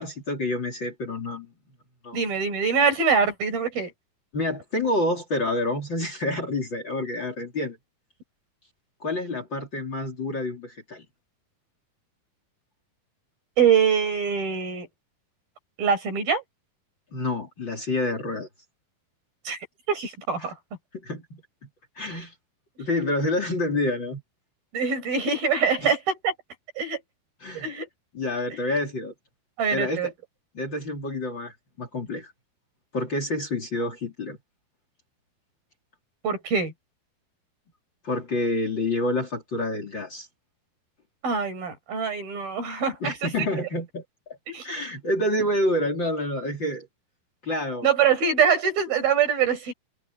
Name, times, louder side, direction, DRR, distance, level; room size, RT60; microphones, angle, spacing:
voice 1, 0.0-1.5 2.0-2.2 4.3-7.8 9.0-11.1 17.1-18.5 20.4-20.5 20.9-21.7 22.0-22.3 22.8-24.2 25.8-25.9 27.4-27.7 28.1-29.1 29.7-30.1 30.6-32.3 32.9-34.4 38.0-40.3 43.0-44.4 44.6-46.9 47.4-47.9, left 1 dB, 30° left, 3.5 m, -28 dB
voice 2, 2.1-3.9 13.6-14.9 15.8-16.4 19.4-19.6 19.9-20.6 24.7-26.3 26.8-27.0 27.5-27.9 28.5-28.6 29.6-30.1 36.2-36.7 41.2-43.3 44.5-44.7 47.8-49.7, right 6 dB, 70° right, 8.2 m, -24 dB
omnidirectional pair, 4.4 m